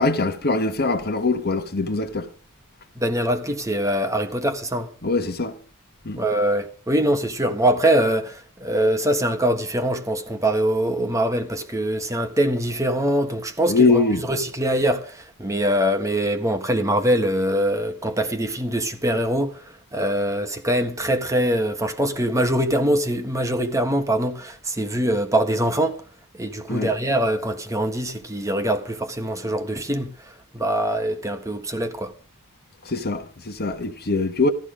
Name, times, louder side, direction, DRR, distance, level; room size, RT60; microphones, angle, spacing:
voice 1, 0.0-2.3 5.0-5.5 6.0-6.2 13.7-14.2 26.7-26.9 32.9-34.5, left 3 dB, 45° left, 1.4 m, -22 dB
voice 2, 3.0-4.9 6.2-26.0 26.4-30.1 30.5-32.1, right 1 dB, 15° right, 1.5 m, -23 dB
14.5 x 13.5 x 5.0 m
head